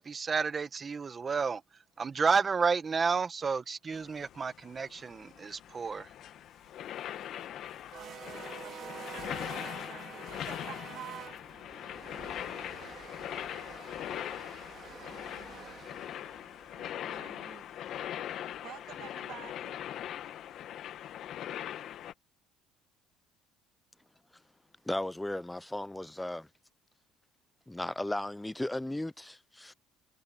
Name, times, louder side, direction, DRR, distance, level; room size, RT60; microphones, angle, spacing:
voice 1, 0.0-1.6 2.0-6.1, right 5 dB, 25° right, 1.0 m, -31 dB
sound 1, 3.9-22.1, left 11 dB, 50° left, 0.9 m, -41 dB
sound 2, 6.7-18.8, right 8 dB, 40° right, 2.2 m, -49 dB
voice 2, 8.0-11.5 16.2-16.3 16.7-17.7 18.6-19.8, right 12 dB, 55° right, 2.2 m, -49 dB
voice 3, 24.9-26.5 27.7-29.7, left 1 dB, 5° left, 0.3 m, -35 dB
cardioid pair, 140°, 0 cm